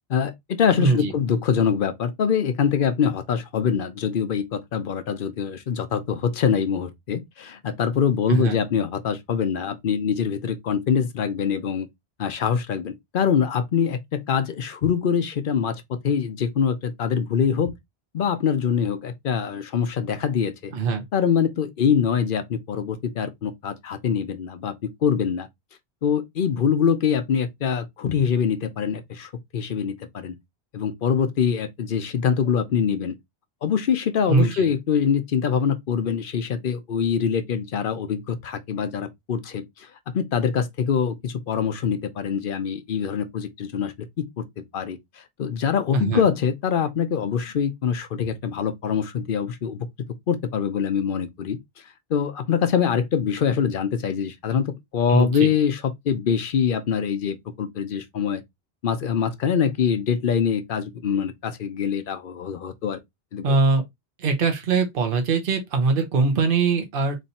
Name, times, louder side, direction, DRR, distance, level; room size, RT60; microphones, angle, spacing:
voice 1, 0.1-11.9 12.2-17.8 18.1-20.7 21.1-24.7 25.0-25.5 26.0-30.4 30.7-33.2 33.6-39.9 40.1-44.4 44.7-45.0 45.4-49.9 50.3-51.6 52.1-58.4 58.8-63.0 63.3-63.6, left 7 dB, 60° left, 0.8 m, -24 dB
voice 2, 0.8-1.1 8.3-8.6 20.7-21.0 34.3-34.7 45.9-46.2 55.1-55.5 63.4-63.8 64.2-67.2, right 4 dB, 60° right, 1.0 m, -22 dB
3.2 x 2.7 x 4.1 m
omnidirectional pair, 1.0 m